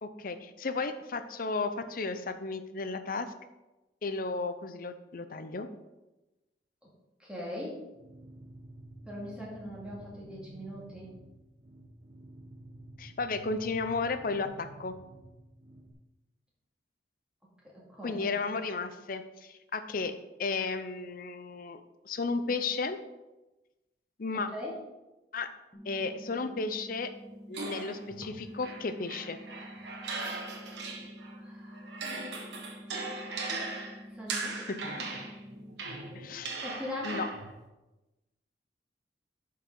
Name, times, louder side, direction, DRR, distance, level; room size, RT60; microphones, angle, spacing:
voice 1, 0.0-3.3 4.0-5.7 13.0-14.9 18.0-20.1 20.4-23.0 24.2-24.5 25.3-25.5 25.9-27.1 27.5-29.4 34.5-34.8 36.1-36.6 37.0-37.3, left 4 dB, 55° left, 9 dB, 0.6 m, -34 dB
voice 2, 7.2-7.8 9.1-11.1 17.6-18.3 24.5-24.7 31.4-32.0 34.1-34.7 36.6-37.3, left 1 dB, 5° right, -6 dB, 2.3 m, -40 dB
sound 1, 7.9-15.9, equal, 40° right, 1.2 m, -50 dB
sound 2, 25.7-35.7, equal, 30° left, 1.2 m, -48 dB
sound 3, 27.5-31.4 31.7-37.6, right 3 dB, 85° right, 1.4 m, -39 dB
11.5 x 4.7 x 3.8 m, 1.0 s
head